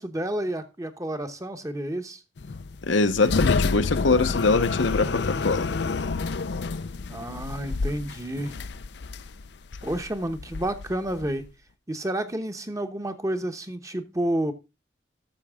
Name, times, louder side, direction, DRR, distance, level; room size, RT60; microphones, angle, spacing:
voice 1, 0.0-2.2 7.1-8.6 9.8-11.4 11.9-14.5, right 1 dB, 15° right, 0.9 m, -30 dB
sound 1, 2.4-11.5, left 4 dB, 60° left, 0.5 m, -29 dB
voice 2, 2.8-5.7, left 3 dB, 80° left, 1.0 m, -23 dB
13.0 x 6.5 x 3.6 m
head